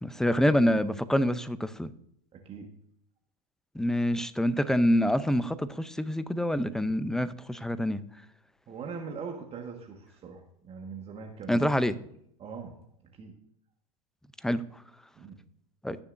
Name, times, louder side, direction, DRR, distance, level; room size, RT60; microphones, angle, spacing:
voice 1, 0.0-1.9 3.7-8.0 11.5-12.0 14.4-14.6 15.8-16.0, equal, 5° left, 0.6 m, -26 dB
voice 2, 2.3-2.7 8.7-12.1 12.4-12.7 13.0-13.3 15.1-15.4, right 5 dB, 30° right, 1.6 m, -42 dB
17.5 x 7.0 x 2.6 m
hypercardioid pair, 100°, 20 cm